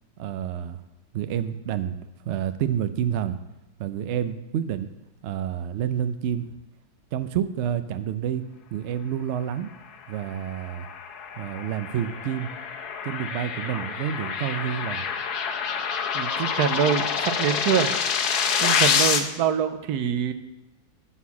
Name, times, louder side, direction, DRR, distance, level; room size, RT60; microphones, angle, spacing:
voice 1, 0.2-0.8 1.1-2.0 2.3-3.4 3.8-4.9 5.2-6.5 7.1-8.4 8.7-9.7 10.1-10.9 11.4-12.5 13.0-15.0, right 9 dB, 65° right, 11 dB, 0.7 m, -28 dB
sound 1, 10.3-19.2, left 6 dB, 85° left, 1.3 m, -27 dB
voice 2, 16.1-17.9 18.6-20.3, right 8 dB, 85° right, 10 dB, 1.2 m, -25 dB
11.0 x 4.4 x 7.1 m, 0.96 s
omnidirectional pair, 1.6 m